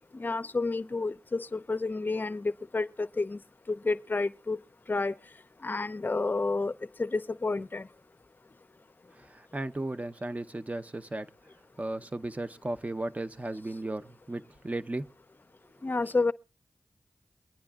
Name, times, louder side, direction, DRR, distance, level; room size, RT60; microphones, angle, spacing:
voice 1, 0.2-3.4 3.8-4.6 4.9-5.1 5.6-6.7 7.0-7.9 15.8-16.3, left 3 dB, 40° left, 0.5 m, -30 dB
voice 2, 9.2-11.3 11.8-15.0, right 2 dB, 30° right, 0.7 m, -35 dB
23.5 x 9.5 x 2.4 m
cardioid pair, 40°, 5 cm